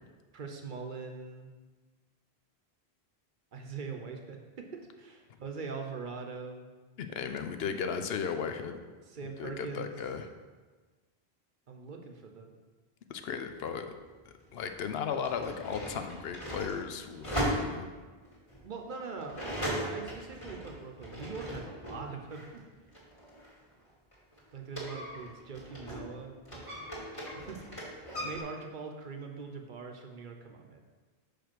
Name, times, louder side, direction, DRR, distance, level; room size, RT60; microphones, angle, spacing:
voice 1, 0.3-1.5 3.5-4.7 5.0-6.7 9.1-9.9 11.7-12.5 18.6-22.6 24.5-27.7 28.0-30.8, right 4 dB, 55° right, 3 dB, 0.8 m, -42 dB
voice 2, 7.0-8.8 9.4-10.3 13.1-13.9 14.5-17.9, left 6 dB, 75° left, 7 dB, 0.8 m, -35 dB
sound 1, 14.1-14.2 15.0-22.0 22.3-26.1 26.4-28.4, equal, 30° left, 1.9 m, -38 dB
5.0 x 4.7 x 6.1 m, 1.3 s
omnidirectional pair, 1.0 m